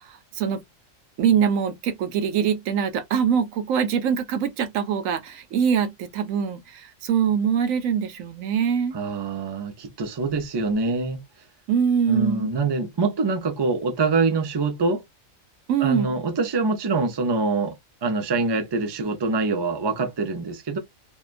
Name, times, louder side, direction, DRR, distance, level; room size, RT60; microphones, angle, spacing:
voice 1, 0.1-0.6 1.2-8.9 11.7-12.5 15.7-16.1, right 7 dB, 80° right, 1.1 m, -23 dB
voice 2, 8.9-11.2 12.1-15.1 15.8-17.7 18.0-20.8, right 3 dB, 45° right, 0.3 m, -25 dB
2.8 x 2.2 x 2.4 m
omnidirectional pair, 1.4 m